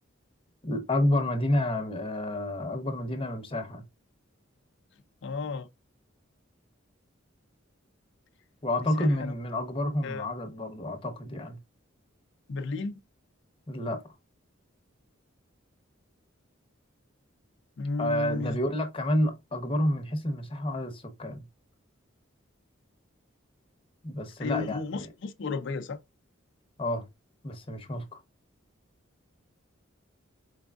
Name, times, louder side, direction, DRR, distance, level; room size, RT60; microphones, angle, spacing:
voice 1, 0.6-3.8 8.6-11.6 13.7-14.0 18.0-21.4 24.0-25.1 26.8-27.0 27.4-28.2, left 1 dB, 25° left, 0.8 m, -29 dB
voice 2, 5.2-5.7 8.8-9.3 10.0-10.3 12.5-13.0 17.8-18.6 24.4-26.0, left 3 dB, 60° left, 0.5 m, -33 dB
4.7 x 3.4 x 2.4 m
head